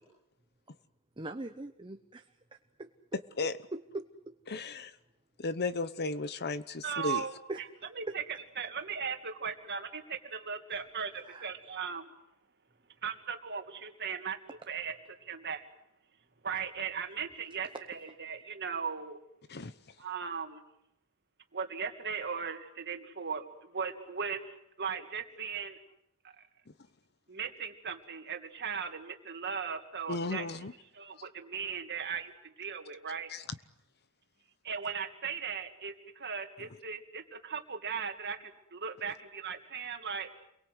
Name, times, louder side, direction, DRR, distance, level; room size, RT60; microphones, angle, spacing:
voice 1, 1.2-2.3 2.8-2.9 3.7-4.3 7.5-8.1 11.2-11.5 17.7-18.5, right 2 dB, 20° right, 7 dB, 1.0 m, -42 dB
voice 2, 4.5-4.9 5.4-7.2 19.5-19.7 30.1-30.7 33.3-33.4, left 3 dB, 50° left, 14 dB, 0.9 m, -34 dB
voice 3, 6.8-7.6 8.0-8.2 8.6-12.1 13.0-15.0 15.2-15.7 16.4-19.2 20.0-20.6 21.5-25.8 27.3-30.5 30.9-33.3 34.6-40.3, right 6 dB, 50° right, 6 dB, 2.4 m, -38 dB
29.0 x 23.0 x 8.1 m, 0.81 s
head